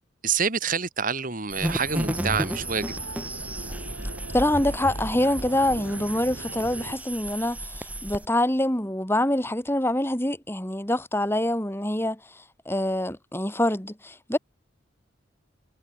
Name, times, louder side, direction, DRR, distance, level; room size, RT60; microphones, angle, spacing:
voice 1, 0.2-3.0, right 6 dB, 45° right, 1.9 m, -27 dB
sound 1, 1.5-8.3, right 1 dB, 10° right, 3.3 m, -33 dB
sound 2, 1.7-6.9, right 1 dB, 85° right, 6.8 m, -40 dB
voice 2, 4.3-12.2 12.6-14.4, left 1 dB, 10° left, 3.0 m, -25 dB
head